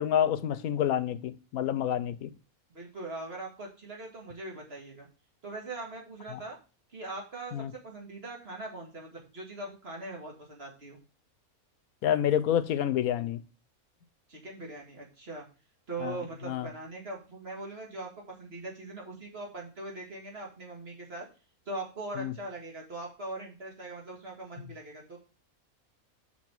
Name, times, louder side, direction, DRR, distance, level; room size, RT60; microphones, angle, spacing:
voice 1, 0.0-2.3 7.5-7.7 12.0-13.4 16.0-16.2 16.5-16.7 22.2-22.3, left 10 dB, 85° left, 1.1 m, -28 dB
voice 2, 2.7-5.1 5.4-6.6 6.9-11.0 14.3-15.5 15.9-21.3 21.7-25.2, right 2 dB, 45° right, 2.2 m, -41 dB
5.9 x 5.9 x 4.5 m
omnidirectional pair, 1.5 m